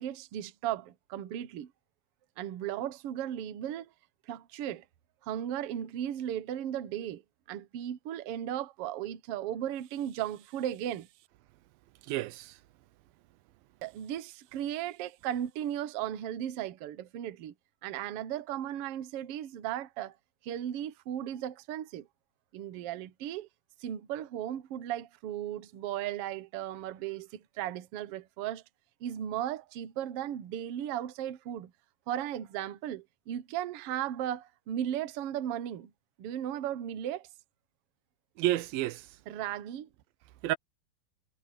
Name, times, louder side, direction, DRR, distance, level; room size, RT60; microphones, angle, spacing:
voice 1, 0.0-1.7 2.4-3.9 4.3-4.8 5.2-7.2 7.5-11.1 13.8-17.5 17.8-20.1 20.4-22.1 22.5-23.5 23.8-28.6 29.0-31.7 32.1-35.9 36.2-37.3 39.3-39.9, right 11 dB, 60° right, 1.6 m, -36 dB
voice 2, 12.0-12.6 38.4-39.1 40.4-40.6, right 15 dB, 90° right, 2.6 m, -30 dB
omnidirectional pair, 4.0 m